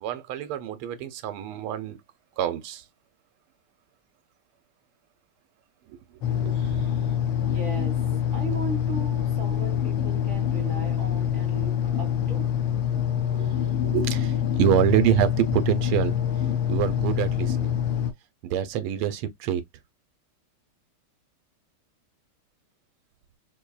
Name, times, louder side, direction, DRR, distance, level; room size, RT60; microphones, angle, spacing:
voice 1, 0.0-2.0 2.4-2.8 5.9-6.0 6.3-6.9 13.2-16.2 16.7-17.8 18.4-19.6, right 10 dB, 85° right, 1.5 m, -26 dB
sound 1, 6.2-18.1, left 9 dB, 70° left, 1.4 m, -25 dB
voice 2, 7.4-7.9 8.3-12.5 14.5-14.6, right 2 dB, 40° right, 1.5 m, -37 dB
4.3 x 2.7 x 2.3 m
omnidirectional pair, 2.4 m